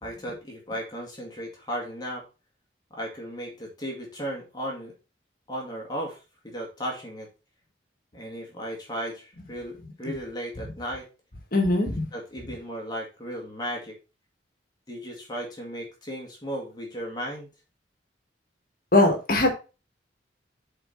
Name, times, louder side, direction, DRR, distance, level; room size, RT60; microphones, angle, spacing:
voice 1, 0.0-2.2 2.9-4.9 5.5-6.2 6.4-7.3 8.1-11.1 12.1-14.0 14.9-17.5, equal, 20° left, -1 dB, 2.2 m, -35 dB
voice 2, 11.5-12.1 18.9-19.5, left 2 dB, 50° left, 3 dB, 1.7 m, -20 dB
7.7 x 4.3 x 4.6 m, 0.31 s
head